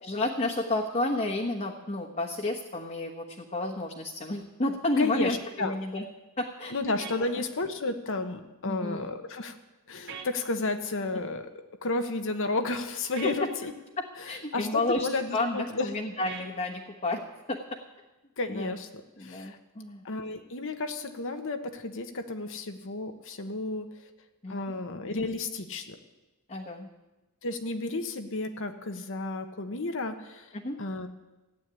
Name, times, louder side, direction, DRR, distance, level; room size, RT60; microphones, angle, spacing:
voice 1, 0.0-6.0 6.4-6.7 8.6-9.1 14.0-17.2 17.5-17.6 18.5-18.7 19.2-20.0 24.4-24.8 26.5-26.9 30.5-30.8, left 2 dB, 35° left, -2 dB, 1.3 m, -31 dB
voice 2, 5.0-5.7 6.7-9.6 9.9-11.5 11.8-13.7 14.2-15.9 18.4-18.9 19.2-19.6 20.0-23.9 24.5-26.0 27.4-30.5 30.8-31.1, left 3 dB, 60° left, 6 dB, 1.1 m, -32 dB
sound 1, 7.0-7.2 10.1-10.3 13.2-13.4 16.3-16.5, right 6 dB, 55° right, 2.3 m, -40 dB
15.0 x 8.5 x 9.8 m, 1.1 s
head